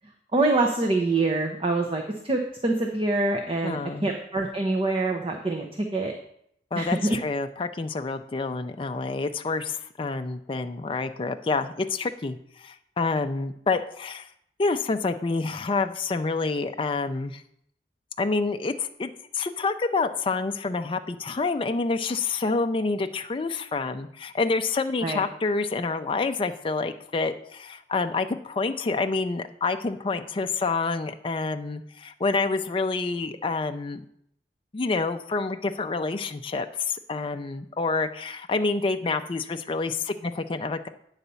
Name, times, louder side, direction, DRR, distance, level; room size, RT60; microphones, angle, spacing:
voice 1, 0.3-5.7 5.9-6.1 6.7-7.2 25.0-25.2, right 2 dB, 30° right, 2 dB, 0.7 m, -25 dB
voice 2, 3.6-4.1 6.7-14.3 14.6-17.4 18.2-34.0 34.7-40.9, left 3 dB, 30° left, 7 dB, 0.4 m, -28 dB
9.0 x 4.1 x 6.9 m, 0.71 s
head